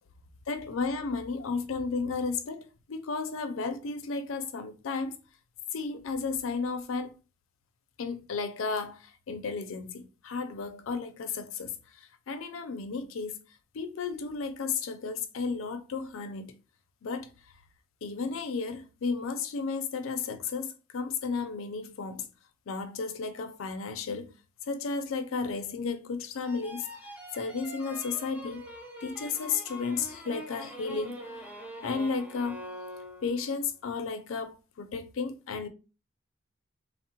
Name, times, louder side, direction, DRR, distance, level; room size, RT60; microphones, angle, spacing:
voice 1, 0.5-5.2 5.7-7.1 8.0-11.7 12.3-13.4 13.7-16.5 17.0-17.3 18.0-22.3 22.7-24.3 24.7-28.6 29.0-31.3 31.8-32.7 33.2-35.7, left 4 dB, 85° left, 0.4 m, -33 dB
sound 1, 26.4-33.6, equal, 10° right, 0.6 m, -44 dB
3.5 x 2.0 x 2.8 m
head